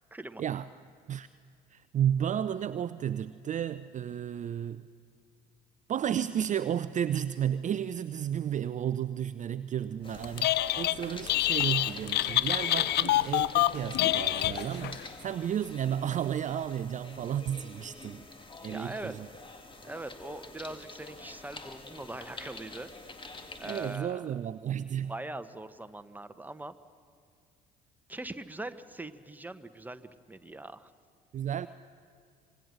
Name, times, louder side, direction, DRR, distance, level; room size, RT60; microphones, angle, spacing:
voice 1, 0.1-0.4 18.7-19.1 19.8-22.9 23.6-24.3 25.1-26.7 28.1-30.9, right 2 dB, 10° right, 10 dB, 1.2 m, -41 dB
voice 2, 1.7-4.8 5.9-18.3 18.6-19.3 23.6-25.1 31.3-31.7, right 9 dB, 35° right, 14 dB, 0.5 m, -32 dB
sound 1, 10.0-24.0, left 2 dB, 25° left, 2.1 m, -47 dB
Telephone, 10.2-11.0 11.3-15.0, left 15 dB, 55° left, 0.6 m, -26 dB
25.5 x 21.0 x 6.6 m, 2.2 s
figure-of-eight pair, 50°, 21 cm